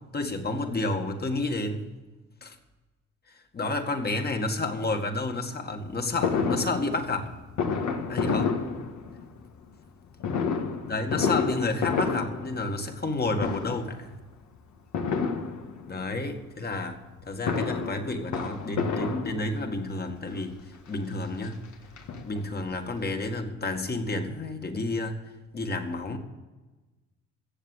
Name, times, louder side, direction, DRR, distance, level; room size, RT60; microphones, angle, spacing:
voice 1, 0.1-1.8 2.4-2.6 3.5-7.3 8.1-8.6 10.9-14.1 15.9-21.6 22.3-25.2 25.5-26.2, left 2 dB, 30° left, 5 dB, 2.1 m, -30 dB
Fireworks, 6.2-9.4 10.2-13.1 13.4-14.0 14.9-16.0 17.2-19.8 20.6-20.7 21.0-21.1 21.4-22.7 23.0-23.1 23.3-23.4, left 5 dB, 70° left, 1.7 m, -30 dB
15.5 x 7.5 x 8.1 m, 1.2 s
cardioid pair, 90°, 30 cm